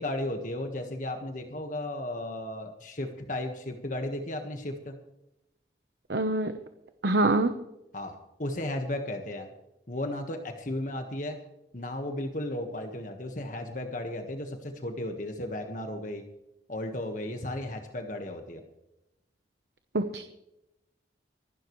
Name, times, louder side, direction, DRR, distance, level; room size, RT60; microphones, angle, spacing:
voice 1, 0.0-5.0 7.9-9.5 9.9-11.4 11.7-16.2 16.7-18.6, left 1 dB, 45° left, 4 dB, 1.5 m, -35 dB
voice 2, 6.1-6.5 7.0-7.5 19.9-20.2, right 2 dB, 70° right, 8 dB, 1.0 m, -24 dB
25.5 x 12.5 x 3.2 m, 0.90 s
head